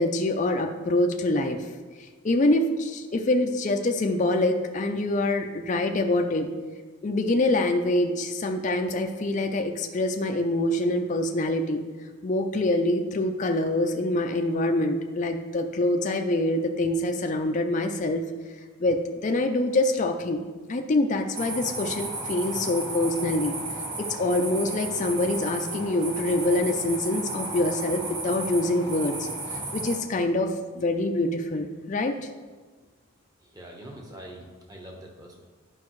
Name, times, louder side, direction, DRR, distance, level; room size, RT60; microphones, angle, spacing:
voice 1, 0.0-1.6 2.0-6.5 7.0-11.8 12.2-18.2 18.8-23.5 24.0-32.2, left 2 dB, 35° left, 4 dB, 0.4 m, -25 dB
sound 1, 21.3-30.0, right 2 dB, 55° right, 1.7 m, -34 dB
voice 2, 33.4-35.4, right 1 dB, 15° right, -1 dB, 1.0 m, -44 dB
10.5 x 5.2 x 3.1 m, 1.4 s
head